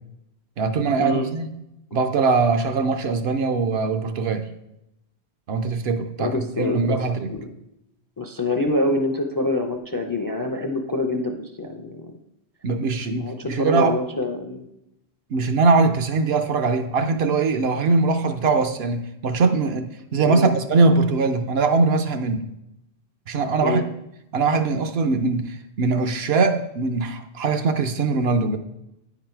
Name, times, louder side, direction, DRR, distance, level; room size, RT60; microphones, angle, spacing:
voice 1, 0.6-1.5 1.9-4.5 5.5-7.3 12.6-14.0 15.3-22.4 23.3-23.8 24.3-28.6, right 4 dB, 70° right, 8 dB, 0.9 m, -21 dB
voice 2, 6.2-7.0 7.3-7.5 8.2-12.1 13.2-14.6 20.2-20.5 23.6-23.8, left 2 dB, 30° left, 4 dB, 0.4 m, -25 dB
9.6 x 4.0 x 4.4 m, 0.85 s
omnidirectional pair, 1.1 m